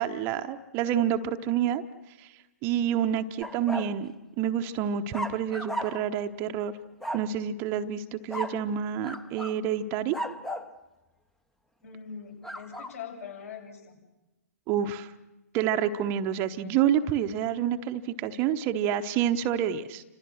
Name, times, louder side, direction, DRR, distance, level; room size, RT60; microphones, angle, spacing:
voice 1, 0.0-1.8 2.2-2.3 2.6-6.7 7.1-10.2 14.7-15.1 15.5-20.0, right 9 dB, 25° right, 8 dB, 0.9 m, -28 dB
sound 1, 3.4-4.0 5.1-6.2 7.0-7.3 8.3-8.6 9.0-9.6 10.1-10.7 12.4-12.9, equal, 5° left, 0.8 m, -35 dB
voice 2, 11.8-14.0, left 7 dB, 60° left, 1 dB, 7.4 m, -42 dB
30.0 x 26.5 x 6.4 m, 1.1 s
figure-of-eight pair, 125°, 9 cm